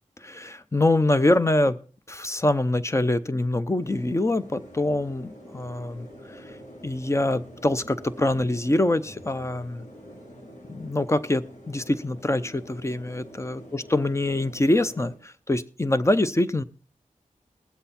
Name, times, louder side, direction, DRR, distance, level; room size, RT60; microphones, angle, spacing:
voice 1, 0.2-1.8 2.1-6.6 6.8-9.8 10.7-16.6, left 1 dB, 20° left, 13 dB, 0.7 m, -24 dB
sound 1, 3.8-15.2, equal, 80° left, 3.5 m, -46 dB
20.5 x 7.9 x 4.2 m, 0.37 s
wide cardioid pair, 75°, 14 cm